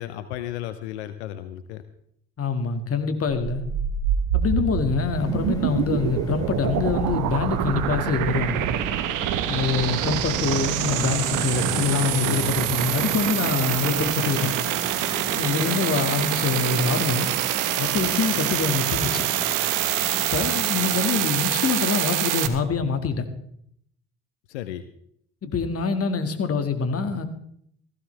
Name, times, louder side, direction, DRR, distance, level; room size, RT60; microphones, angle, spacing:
voice 1, 0.0-1.8 11.5-12.5 24.5-24.8, left 12 dB, 85° left, 11 dB, 0.8 m, -34 dB
voice 2, 2.4-3.6 4.3-8.7 9.5-14.5 15.3-17.3 17.8-19.3 20.3-23.3 25.4-27.2, left 5 dB, 45° left, 8 dB, 2.0 m, -25 dB
sound 1, 3.3-22.5, right 11 dB, 70° right, 1.2 m, -25 dB
sound 2, 5.1-21.6, left 1 dB, 10° left, 4.6 m, -39 dB
17.0 x 15.5 x 3.4 m, 0.70 s
hypercardioid pair, 60°, 33 cm